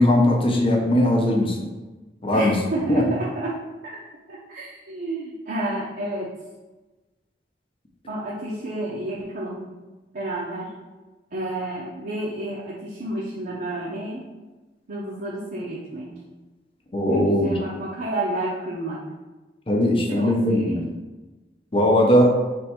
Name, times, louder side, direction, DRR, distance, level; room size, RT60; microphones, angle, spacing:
voice 1, 0.0-1.7 2.2-2.6 2.9-3.0 16.9-17.6 19.7-20.9 21.7-22.3, left 1 dB, 30° left, 0 dB, 0.7 m, -19 dB
voice 2, 2.3-3.6 4.3-6.3 8.1-9.6 10.1-10.7 11.3-14.2 14.9-16.1 17.1-19.0 20.1-20.8, right 1 dB, 55° right, -6 dB, 0.7 m, -30 dB
3.5 x 3.2 x 4.4 m, 1.2 s
head